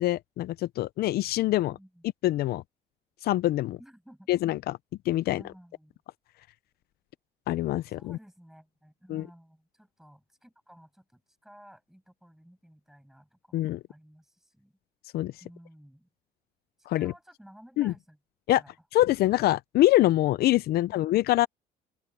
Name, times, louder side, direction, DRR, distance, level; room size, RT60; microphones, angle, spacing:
voice 1, 0.0-1.7 2.2-2.6 3.2-3.8 4.3-4.8 5.1-5.4 7.5-8.2 9.1-9.2 13.5-13.8 15.1-15.3 16.9-17.1 17.8-17.9 18.5-18.6 18.9-21.5, left 15 dB, 65° left, 0.5 m, -24 dB
voice 2, 1.7-2.0 3.8-4.3 5.3-6.0 7.9-14.7 15.4-16.1 16.8-18.2 18.5-18.7, equal, ahead, 6.5 m, -54 dB
open air
cardioid pair, 110°, 17 cm